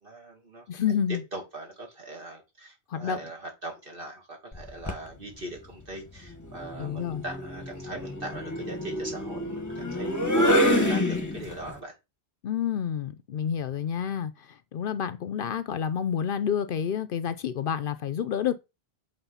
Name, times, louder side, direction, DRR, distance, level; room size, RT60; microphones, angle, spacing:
voice 1, 0.0-0.7 1.3-11.9, right 1 dB, 60° right, 2.5 m, -39 dB
voice 2, 0.7-1.2 2.9-3.2 6.8-7.2 12.4-18.6, left 8 dB, 65° left, 0.7 m, -29 dB
sound 1, 4.5-5.1 6.4-11.7, equal, 20° left, 1.0 m, -27 dB
8.1 x 3.5 x 5.6 m
omnidirectional pair, 1.1 m